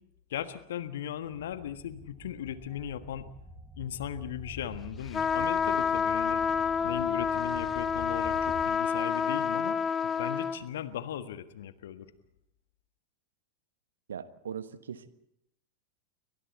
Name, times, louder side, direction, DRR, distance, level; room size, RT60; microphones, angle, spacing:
voice 1, 0.3-3.3 3.8-6.4 6.8-9.8 10.2-12.1, left 10 dB, 60° left, 11 dB, 1.5 m, -38 dB
sound 1, 1.2-8.7, equal, 5° left, 7.7 m, -47 dB
sound 2, 5.1-10.6, left 6 dB, 20° left, 1.0 m, -28 dB
voice 2, 14.1-15.1, right 8 dB, 65° right, 13 dB, 1.3 m, -40 dB
29.5 x 24.5 x 4.3 m, 0.78 s
figure-of-eight pair, 90°, 0 cm